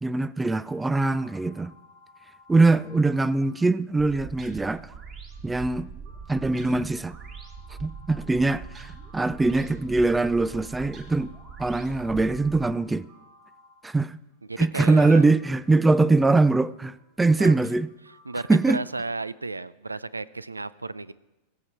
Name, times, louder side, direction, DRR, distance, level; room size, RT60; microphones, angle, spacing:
voice 1, 0.0-1.7 2.5-4.8 5.4-5.9 6.3-7.2 7.8-11.3 11.6-13.1 13.8-14.2 14.6-17.9 18.5-18.8, right 3 dB, 10° right, 0.3 m, -22 dB
sound 1, 0.6-14.4 15.0-18.9, left 1 dB, 50° right, 4.1 m, -56 dB
sound 2, 4.0-12.7, right 5 dB, 30° right, 1.6 m, -42 dB
voice 2, 14.4-15.2 17.4-17.5 18.3-21.1, right 3 dB, 80° right, 0.4 m, -33 dB
21.5 x 7.5 x 4.5 m
figure-of-eight pair, 90°, 0 cm